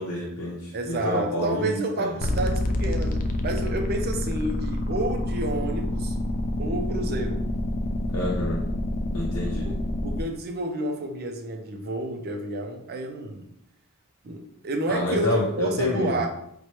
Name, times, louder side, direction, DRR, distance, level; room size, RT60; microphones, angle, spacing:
voice 1, 0.0-2.1 8.1-8.6 9.1-9.7 14.9-16.2, left 1 dB, 75° left, -4 dB, 0.7 m, -28 dB
voice 2, 0.7-6.2 6.6-7.5 9.6-13.5 14.2-16.3, right 2 dB, 45° right, 4 dB, 0.4 m, -30 dB
sound 1, 2.2-10.2, left 1 dB, 40° left, 0.3 m, -27 dB
4.3 x 2.2 x 3.0 m, 0.74 s
head